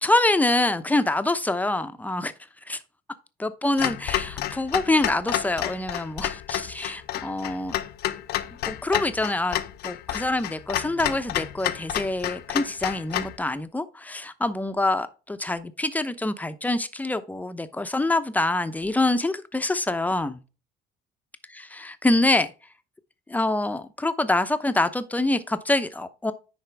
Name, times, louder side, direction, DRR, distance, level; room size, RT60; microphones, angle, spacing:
voice 1, 0.0-2.3 2.7-2.8 3.4-7.7 8.6-20.4 21.6-22.5 23.3-26.3, left 2 dB, 10° left, 0.8 m, -25 dB
Clock, 3.8-13.4, left 13 dB, 70° left, 0.7 m, -30 dB
10.0 x 4.3 x 3.4 m
cardioid pair, 110°, 17 cm